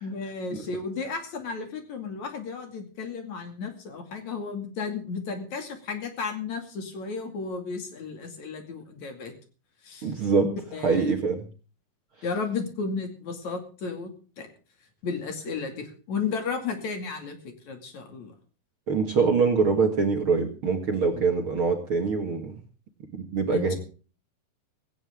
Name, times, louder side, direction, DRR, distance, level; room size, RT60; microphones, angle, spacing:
voice 1, 0.0-9.3 9.8-10.1 10.4-11.1 12.2-14.1 14.4-14.5 15.0-18.3 21.0-21.2 23.5-23.8, left 5 dB, 55° left, 6 dB, 3.6 m, -33 dB
voice 2, 10.0-10.5 10.8-11.4 18.9-22.6 23.1-23.7, right 5 dB, 45° right, 4 dB, 2.0 m, -24 dB
17.5 x 16.5 x 3.6 m, 0.37 s
omnidirectional pair, 4.2 m